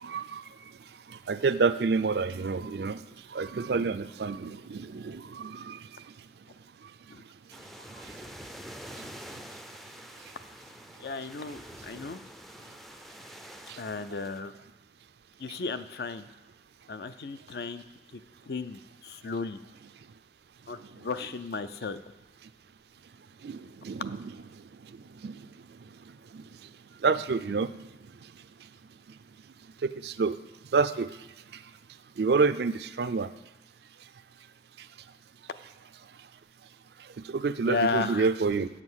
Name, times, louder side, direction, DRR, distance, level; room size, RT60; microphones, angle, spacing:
voice 1, 0.0-0.4 1.3-3.0 3.3-5.8 23.4-24.3 25.2-25.4 26.3-26.4 27.0-27.7 30.0-30.4 30.7-31.1 32.2-33.3 37.3-38.7, right 4 dB, 65° right, 13 dB, 0.4 m, -28 dB
sound 1, 7.5-14.4, equal, ahead, 0.4 m, -46 dB
voice 2, 11.0-12.2 13.8-14.5 15.4-16.3 16.9-17.8 18.5-19.6 20.7-22.0 37.6-38.3, left 3 dB, 60° left, 12 dB, 0.4 m, -34 dB
8.4 x 7.5 x 6.2 m, 1.0 s
head